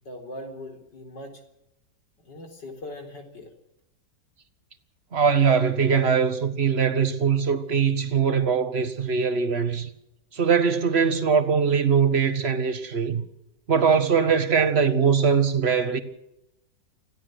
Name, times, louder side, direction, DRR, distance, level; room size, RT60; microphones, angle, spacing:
voice 1, 0.0-1.4 2.2-3.5, left 1 dB, 80° left, 4.6 m, -40 dB
voice 2, 5.1-9.9 10.3-13.2 13.7-16.0, right 6 dB, 40° right, 1.7 m, -21 dB
26.0 x 16.0 x 6.4 m
omnidirectional pair, 1.9 m